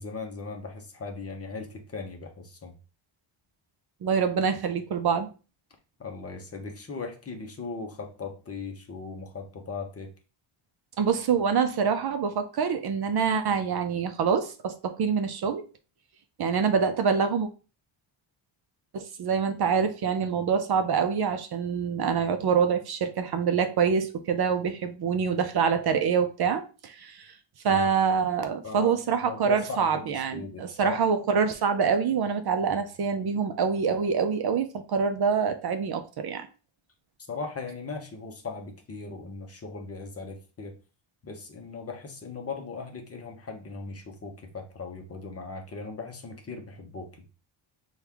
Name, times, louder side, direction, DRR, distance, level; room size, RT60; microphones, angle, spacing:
voice 1, 0.0-2.7 6.0-10.1 27.7-27.9 28.6-29.0 29.2-31.0 37.3-40.7 41.2-47.1, left 4 dB, 30° left, 0.7 m, -38 dB
voice 2, 4.0-5.3 11.0-15.6 16.4-17.5 18.9-27.3 27.6-36.5, right 6 dB, 50° right, 0.5 m, -26 dB
6.0 x 2.3 x 3.4 m
wide cardioid pair, 175°, 49 cm